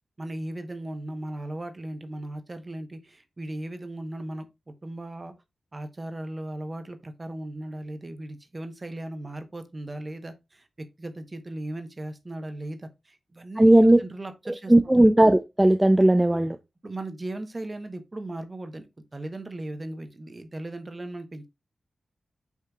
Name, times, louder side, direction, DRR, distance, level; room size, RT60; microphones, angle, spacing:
voice 1, 0.2-5.3 5.7-15.1 16.3-16.4 16.8-21.5, right 1 dB, 35° right, 0.9 m, -37 dB
voice 2, 13.6-14.0 14.5-16.6, right 1 dB, 15° right, 0.4 m, -17 dB
8.1 x 2.8 x 2.3 m
cardioid pair, 55°, 0 cm